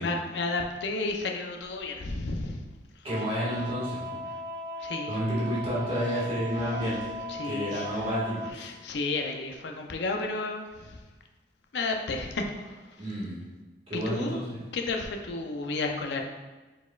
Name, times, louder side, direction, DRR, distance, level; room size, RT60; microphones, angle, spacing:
voice 1, 0.0-2.6 4.8-5.2 6.1-6.2 7.3-7.9 8.5-11.0 11.7-12.8 13.9-14.4 14.7-16.2, left 3 dB, 70° left, 2 dB, 0.5 m, -32 dB
voice 2, 3.0-4.2 5.1-7.0 7.4-8.7 13.0-13.3 13.9-14.4, equal, 30° right, -8 dB, 1.5 m, -30 dB
sound 1, 3.1-8.5, left 1 dB, 50° right, 0.9 m, -37 dB
4.7 x 4.1 x 2.3 m, 1.2 s
head